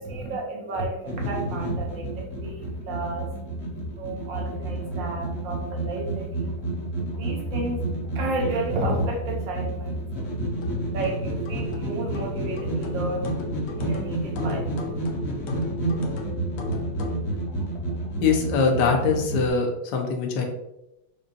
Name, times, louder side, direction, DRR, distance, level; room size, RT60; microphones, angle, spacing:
voice 1, 0.0-15.0, right 2 dB, 75° right, 0 dB, 1.4 m, -33 dB
sound 1, 1.0-19.5, right 2 dB, 50° left, 0.9 m, -30 dB
sound 2, 10.6-17.3, left 5 dB, 85° left, 1.4 m, -37 dB
voice 2, 18.2-20.4, left 5 dB, 70° left, 2 dB, 1.2 m, -22 dB
5.2 x 2.3 x 2.5 m, 0.88 s
omnidirectional pair, 2.0 m